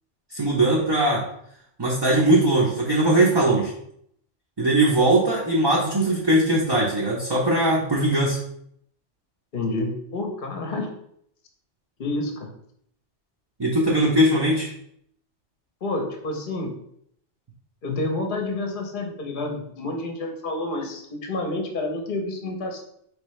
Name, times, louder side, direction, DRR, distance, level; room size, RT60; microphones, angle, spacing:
voice 1, 0.3-1.2 1.8-3.7 4.6-8.4 13.6-14.7, right 1 dB, 25° right, -4 dB, 0.6 m, -20 dB
voice 2, 9.5-10.9 12.0-12.5 15.8-16.7 17.8-22.8, left 2 dB, 50° left, 3 dB, 0.9 m, -29 dB
4.5 x 3.3 x 3.1 m, 0.70 s
omnidirectional pair, 1.2 m